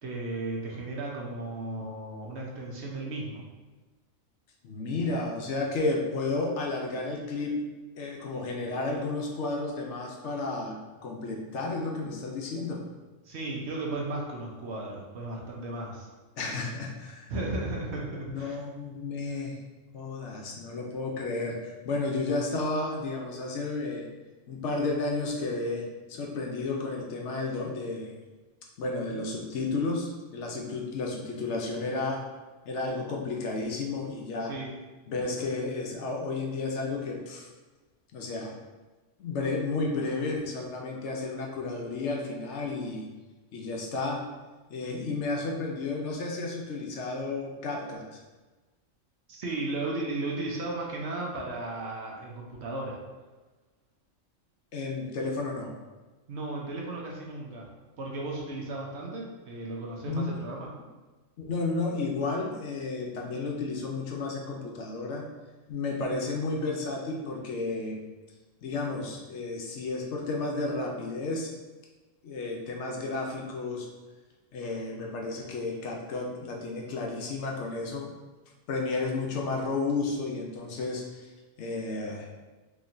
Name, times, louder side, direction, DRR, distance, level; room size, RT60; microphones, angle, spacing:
voice 1, 0.0-3.4 13.2-16.1 17.3-18.6 34.5-34.7 49.3-53.0 56.3-57.7 58.0-60.7, right 2 dB, 60° right, -2 dB, 0.9 m, -35 dB
voice 2, 4.6-7.6 7.9-10.8 11.0-12.8 16.4-17.3 18.2-19.6 19.9-24.1 24.5-28.2 28.8-32.2 32.7-34.5 35.1-37.5 38.1-38.6 39.2-43.1 43.5-44.2 44.7-48.2 54.7-55.7 60.0-60.4 61.5-65.2 65.7-68.0 68.6-71.5 72.2-73.9 74.5-78.1 78.7-81.3 81.6-82.3, left 3 dB, 65° left, 0 dB, 0.9 m, -32 dB
4.2 x 2.9 x 2.6 m, 1.2 s
omnidirectional pair, 1.3 m